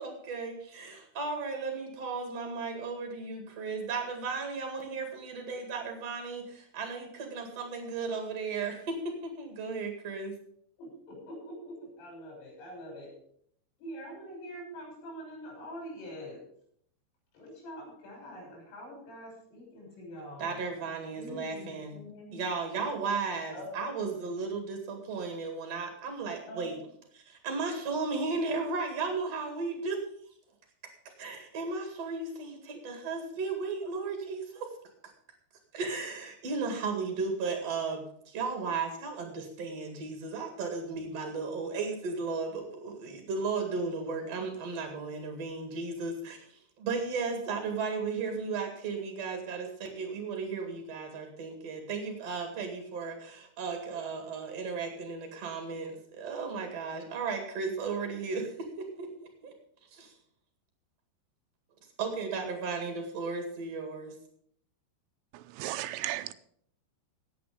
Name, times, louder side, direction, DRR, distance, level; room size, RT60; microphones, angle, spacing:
voice 1, 0.0-10.3 20.4-22.0 22.3-26.8 27.2-30.0 31.0-34.7 35.7-59.5 59.9-60.1 62.0-64.2, right 4 dB, 50° right, 3 dB, 2.2 m, -35 dB
voice 2, 10.8-13.1 13.8-16.4 17.3-20.6 21.2-22.4 23.5-23.8 26.4-26.8, equal, 90° left, -1 dB, 8.5 m, -44 dB
voice 3, 65.3-66.3, right 15 dB, 85° right, 12 dB, 3.2 m, -35 dB
16.0 x 8.8 x 5.1 m, 0.66 s
omnidirectional pair, 5.6 m